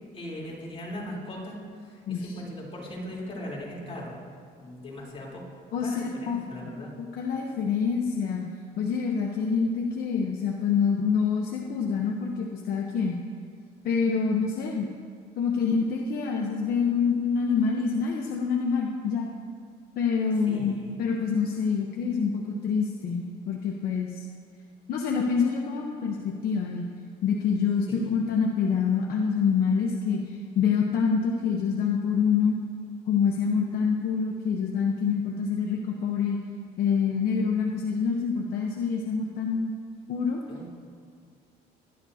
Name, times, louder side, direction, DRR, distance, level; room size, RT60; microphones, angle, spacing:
voice 1, 0.1-4.2 4.6-5.4 5.8-6.9 20.4-20.9 21.2-21.3 27.9-28.2 40.5-40.7, left 1 dB, 35° left, -4 dB, 3.6 m, -39 dB
voice 2, 5.7-6.5 6.8-13.2 13.8-14.9 15.4-19.3 20.0-24.3 24.9-26.9 27.2-30.2 30.5-32.6 33.1-36.4 36.8-39.7 40.1-40.4, left 6 dB, 65° left, 0 dB, 1.0 m, -26 dB
21.0 x 10.5 x 2.8 m, 2.1 s
cardioid pair, 110°, 17 cm